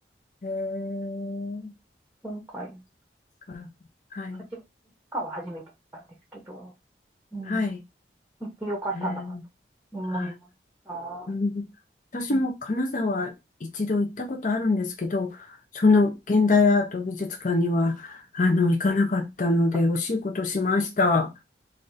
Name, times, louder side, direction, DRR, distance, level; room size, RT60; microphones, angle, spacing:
voice 1, 0.4-1.7 3.5-3.7 4.1-4.4 7.5-7.8 9.0-9.4 10.1-10.3 11.3-11.6 12.1-13.3 13.7-15.3 15.7-21.3, left 3 dB, 45° left, 0.6 m, -24 dB
voice 2, 2.2-2.8 4.5-4.6 5.1-5.6 5.9-6.0 6.3-6.7 7.3-7.7 8.4-9.3 9.9-10.3 10.9-11.3 12.3-12.4, right 1 dB, 5° right, 0.8 m, -34 dB
3.3 x 2.5 x 3.9 m
head